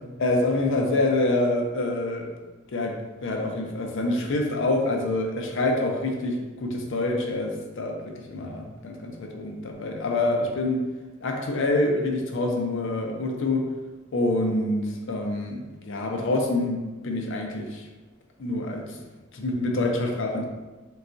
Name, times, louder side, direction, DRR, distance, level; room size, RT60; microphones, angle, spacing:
voice 1, 0.2-2.3 2.7-10.8 11.2-13.6 14.1-17.9 18.4-19.0 19.3-20.5, left 2 dB, 65° left, 2 dB, 0.5 m, -26 dB
3.8 x 2.3 x 2.5 m, 1.2 s
head